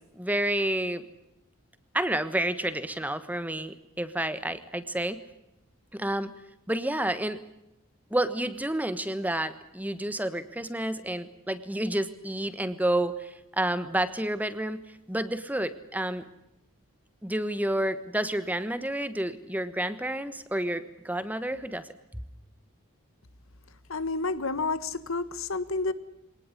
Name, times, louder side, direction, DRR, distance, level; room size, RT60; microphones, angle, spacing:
voice 1, 0.1-1.0 1.9-5.2 5.9-6.3 6.7-7.4 8.1-16.2 17.2-21.9, right 1 dB, 5° right, 12 dB, 1.2 m, -30 dB
voice 2, 23.9-25.9, left 3 dB, 70° left, 14 dB, 1.5 m, -30 dB
25.0 x 19.0 x 9.8 m, 0.87 s
head